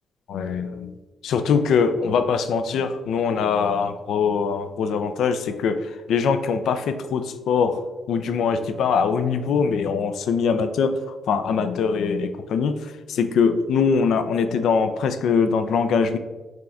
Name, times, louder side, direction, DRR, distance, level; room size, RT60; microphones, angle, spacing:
voice 1, 0.3-0.9 1.2-5.8 6.1-7.8 8.1-12.8 13.1-16.2, left 5 dB, 75° left, 9 dB, 0.3 m, -22 dB
6.0 x 2.3 x 3.5 m, 1.2 s
supercardioid pair, 55°, 0 cm